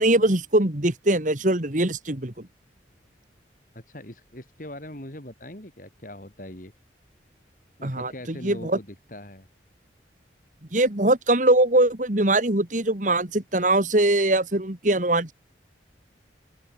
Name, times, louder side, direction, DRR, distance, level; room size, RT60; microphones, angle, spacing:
voice 1, 0.0-2.3 7.8-8.8 10.7-15.3, right 1 dB, 45° right, 2.3 m, -22 dB
voice 2, 3.7-6.7 7.8-9.5, left 1 dB, 50° left, 4.3 m, -41 dB
open air
head